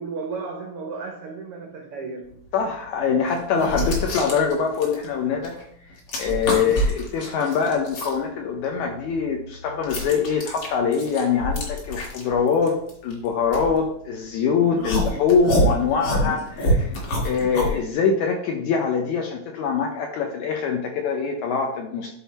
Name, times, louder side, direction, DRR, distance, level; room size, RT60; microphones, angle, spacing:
voice 1, 0.0-2.4 14.6-15.0, right 4 dB, 85° right, 2 dB, 1.2 m, -34 dB
voice 2, 2.5-5.6 6.2-16.9 17.2-22.2, left 6 dB, 70° left, 2 dB, 1.9 m, -23 dB
sound 1, 2.5-2.6 3.3-5.6 5.9-8.1 8.6-14.3 14.8-17.8, equal, 50° left, 2.3 m, -26 dB
11.5 x 3.9 x 4.1 m, 0.66 s
omnidirectional pair, 3.9 m